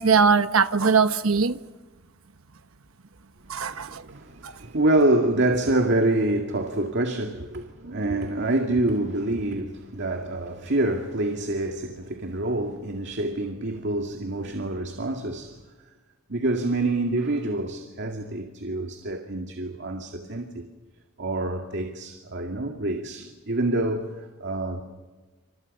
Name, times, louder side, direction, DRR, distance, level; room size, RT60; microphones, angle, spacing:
voice 1, 0.0-1.6 3.5-4.0 4.4-4.5, right 5 dB, 80° right, 1.1 m, -21 dB
voice 2, 3.5-15.6 16.3-20.7 21.2-24.8, right 2 dB, 55° right, 2.2 m, -26 dB
29.0 x 26.5 x 5.5 m
head